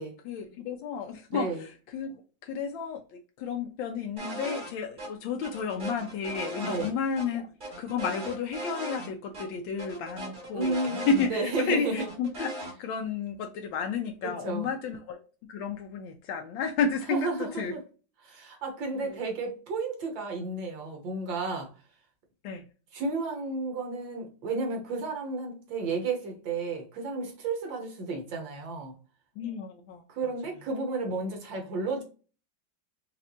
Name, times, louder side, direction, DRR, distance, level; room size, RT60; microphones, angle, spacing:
voice 1, 0.2-12.5 12.8-17.7 18.9-19.3 22.4-22.6 29.4-30.3, left 5 dB, 85° left, 1.3 m, -32 dB
sound 1, 4.2-4.7 5.0-5.1 5.4-7.3 7.6-9.1 9.3-9.5 9.8-11.6 12.0-12.7, right 1 dB, 25° right, 1.6 m, -38 dB
voice 2, 10.5-12.1 14.4-14.7 17.1-17.8 18.2-21.7 22.9-28.9 30.1-32.0, right 3 dB, 75° right, 1.9 m, -32 dB
5.3 x 2.5 x 2.8 m
omnidirectional pair, 2.1 m